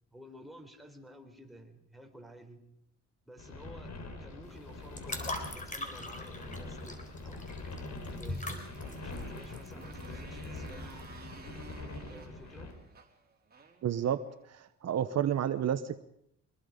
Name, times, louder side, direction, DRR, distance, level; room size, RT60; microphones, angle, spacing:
voice 1, 0.1-2.6 3.3-3.9 4.2-7.5 8.0-8.5 9.0-11.1 12.1-12.7, equal, ahead, 3 dB, 4.0 m, -52 dB
sound 1, 3.4-12.7, left 2 dB, 60° left, 5.0 m, -44 dB
sound 2, 4.4-11.2, left 2 dB, 25° left, 4.0 m, -42 dB
Motorcycle, 8.0-14.5, right 5 dB, 30° right, 4.1 m, -54 dB
voice 2, 13.8-14.2 14.5-16.0, right 10 dB, 60° right, 11 dB, 1.0 m, -30 dB
24.5 x 21.0 x 5.2 m, 0.76 s
cardioid pair, 90°, 30 cm